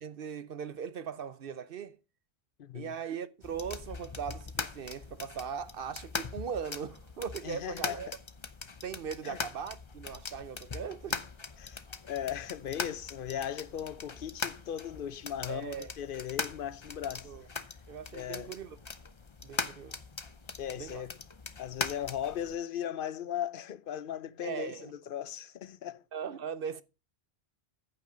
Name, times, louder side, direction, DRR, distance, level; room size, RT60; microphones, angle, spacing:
voice 1, 0.0-2.0 2.7-8.1 8.8-11.2 15.5-15.9 17.2-17.4 17.9-18.8 19.4-20.0 20.7-21.0 24.4-24.9 26.1-26.8, right 7 dB, 60° right, 0.8 m, -39 dB
voice 2, 2.6-2.9 7.4-8.0 9.2-9.4 11.6-17.3 18.1-18.5 20.6-21.2 21.6-26.0, left 10 dB, 60° left, 0.8 m, -38 dB
sound 1, 3.4-22.5, left 4 dB, 30° left, 0.7 m, -41 dB
14.5 x 5.9 x 5.0 m
omnidirectional pair, 1.1 m